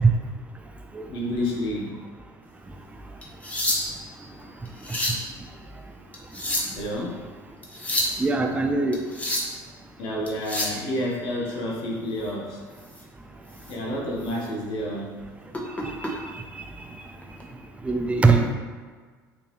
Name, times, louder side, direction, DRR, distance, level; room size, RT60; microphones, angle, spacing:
voice 1, 1.1-2.0 6.7-7.2 10.0-12.6 13.7-15.2, left 1 dB, 55° left, -3 dB, 1.4 m, -29 dB
sound 1, 3.2-4.1 4.7-5.3 6.1-6.9 7.6-8.2 8.9-9.6 10.3-10.8 12.8-13.0 13.5-13.7 14.2-14.3 15.5-16.1 17.2-17.4, left 1 dB, 15° left, 1.3 m, -28 dB
voice 2, 8.2-9.0 17.8-18.5, right 3 dB, 10° right, 4 dB, 0.6 m, -21 dB
7.5 x 4.2 x 3.1 m, 1.5 s
figure-of-eight pair, 65°, 11 cm